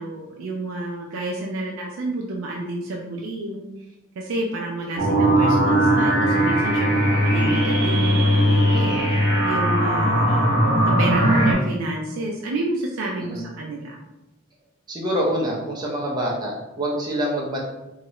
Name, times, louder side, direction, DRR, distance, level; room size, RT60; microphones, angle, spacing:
voice 1, 0.0-3.7 4.2-9.2 9.4-10.6 11.0-14.0, right 2 dB, 85° right, -2 dB, 0.4 m, -30 dB
sound 1, 5.0-11.5, equal, 60° right, 0.9 m, -19 dB
voice 2, 8.7-9.1 13.2-13.4 14.9-17.6, equal, 20° right, -4 dB, 0.6 m, -26 dB
2.8 x 2.4 x 3.1 m, 0.98 s
head